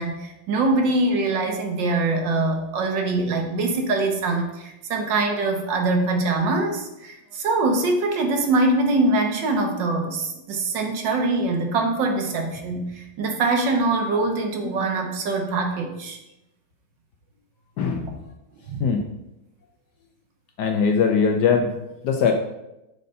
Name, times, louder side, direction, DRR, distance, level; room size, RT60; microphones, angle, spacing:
voice 1, 0.0-16.2 18.0-18.1 18.7-18.9, right 2 dB, 65° right, 3 dB, 1.5 m, -23 dB
voice 2, 17.8-18.2 18.8-19.0 20.6-21.7 22.0-22.3, left 6 dB, 70° left, 4 dB, 1.1 m, -21 dB
6.5 x 4.1 x 5.4 m, 0.92 s
omnidirectional pair, 2.2 m